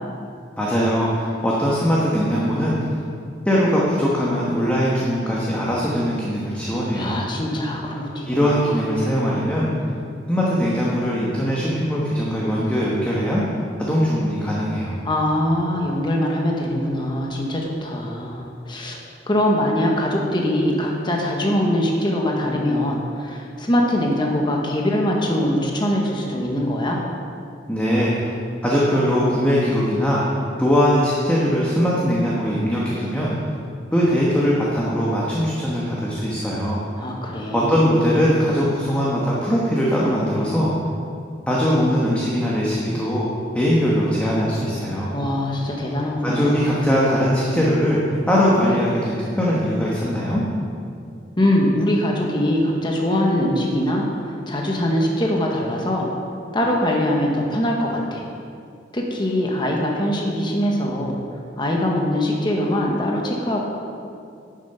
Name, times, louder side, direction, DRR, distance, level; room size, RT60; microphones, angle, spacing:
voice 1, 0.6-2.8 3.4-7.2 8.3-9.7 10.3-13.4 13.8-15.0 27.7-28.3 28.6-30.2 30.6-33.3 33.9-36.8 37.5-40.7 41.5-43.3 43.5-45.1 46.2-48.0 48.3-50.4, equal, 10° left, -6 dB, 1.2 m, -21 dB
voice 2, 6.9-8.8 15.0-19.0 19.3-27.0 37.0-37.7 45.1-47.3 51.4-56.1 56.5-58.3 58.9-61.2 61.6-63.6, left 1 dB, 25° left, -1 dB, 1.1 m, -22 dB
10.5 x 7.2 x 5.6 m, 2.4 s
head